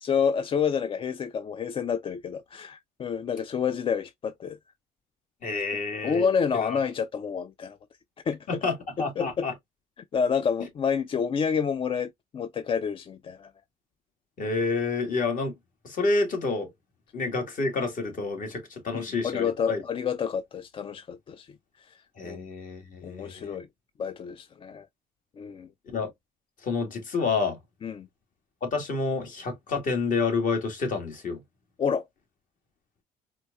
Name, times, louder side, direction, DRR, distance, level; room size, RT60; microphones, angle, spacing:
voice 1, 0.0-4.6 6.0-7.8 8.2-8.6 9.2-9.5 10.1-13.5 18.9-22.5 23.0-23.7 24.0-24.9 25.4-25.7 27.8-28.1 31.8-32.1, left 6 dB, 30° left, 0.3 m, -29 dB
voice 2, 5.4-6.3 6.7-6.8 8.5-9.5 14.4-15.5 15.8-16.7 17.1-19.8 22.2-23.6 25.9-26.1 26.6-27.6 28.6-31.4, left 4 dB, 50° left, 1.7 m, -29 dB
4.3 x 2.7 x 2.3 m
cardioid pair, 110°, 17 cm